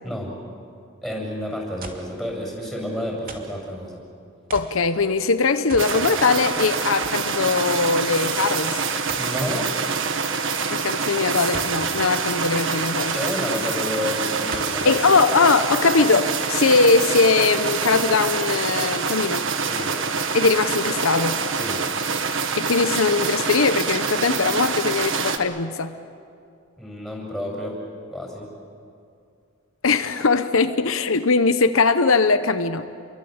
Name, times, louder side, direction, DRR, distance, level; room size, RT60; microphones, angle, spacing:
voice 1, 0.0-0.3 1.0-4.0 9.1-9.7 13.1-14.9 19.7-19.9 21.5-21.8 26.8-27.8 28.1-28.5, left 1 dB, ahead, -1 dB, 7.1 m, -30 dB
sound 1, 1.8-2.1 3.3-3.6 4.5-4.8 5.7-6.0 6.4-6.5 7.0-7.2 9.1-9.3 11.5-11.8 13.2-13.3 14.5-14.8 15.5-15.6, right 3 dB, 45° right, 2.7 m, -37 dB
voice 2, 4.5-8.8 10.7-13.1 14.8-19.4 20.3-21.4 22.6-25.9 29.8-32.8, left 4 dB, 80° left, 10 dB, 1.0 m, -20 dB
sound 2, 5.8-25.4, right 5 dB, 65° right, 1.5 m, -26 dB
29.5 x 23.5 x 8.1 m, 2.4 s
head